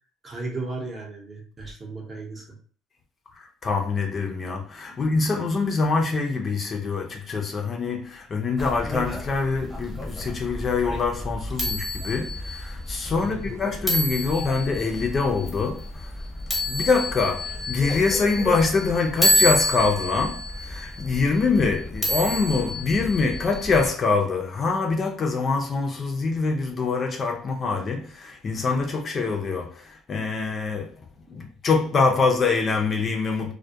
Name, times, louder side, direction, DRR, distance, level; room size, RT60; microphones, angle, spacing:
voice 1, 0.2-2.6 4.9-5.0 13.2-13.5 31.3-31.4, right 3 dB, 30° right, 0.7 m, -35 dB
voice 2, 3.6-16.1 16.7-30.9 31.3-33.5, left 4 dB, 35° left, 0.4 m, -24 dB
sound 1, 8.6-23.9, equal, ahead, 0.8 m, -29 dB
2.2 x 2.1 x 2.7 m
cardioid pair, 110°, 0 cm